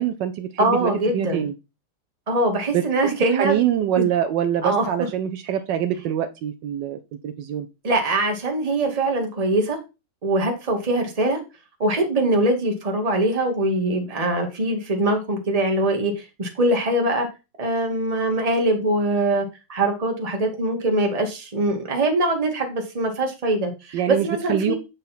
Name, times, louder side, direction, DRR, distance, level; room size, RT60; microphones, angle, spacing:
voice 1, 0.0-1.5 2.7-7.7 23.9-24.7, right 10 dB, 75° right, 8 dB, 1.2 m, -25 dB
voice 2, 0.6-1.5 2.3-3.6 4.0-4.1 4.6-4.9 7.8-9.8 10.2-11.4 11.8-17.3 17.6-24.7, right 1 dB, 20° right, 3 dB, 1.3 m, -22 dB
8.0 x 4.1 x 4.1 m, 0.28 s
omnidirectional pair, 2.1 m